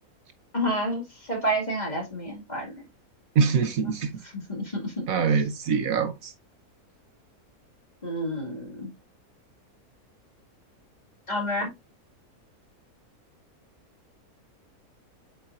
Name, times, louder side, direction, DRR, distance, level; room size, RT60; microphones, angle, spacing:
voice 1, 0.5-2.8 3.8-3.9 4.2-5.1 8.0-8.9 11.3-11.7, equal, 30° left, 2.2 m, -29 dB
voice 2, 3.3-4.1 5.1-6.3, right 6 dB, 70° right, 1.2 m, -24 dB
8.1 x 4.7 x 2.5 m
omnidirectional pair, 1.6 m